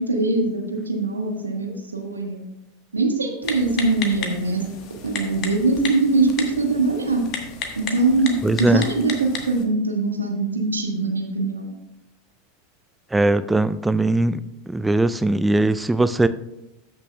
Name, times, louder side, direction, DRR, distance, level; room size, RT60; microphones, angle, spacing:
voice 1, 0.0-2.4 2.9-4.7 5.0-7.2 7.8-11.7, right 3 dB, 80° right, 3 dB, 1.2 m, -22 dB
Typing, 3.4-9.6, left 6 dB, 40° left, 1.2 m, -34 dB
voice 2, 8.4-8.8 13.1-16.3, right 2 dB, 10° right, 14 dB, 0.4 m, -20 dB
13.5 x 6.0 x 2.2 m, 0.88 s
figure-of-eight pair, 85°, 0 cm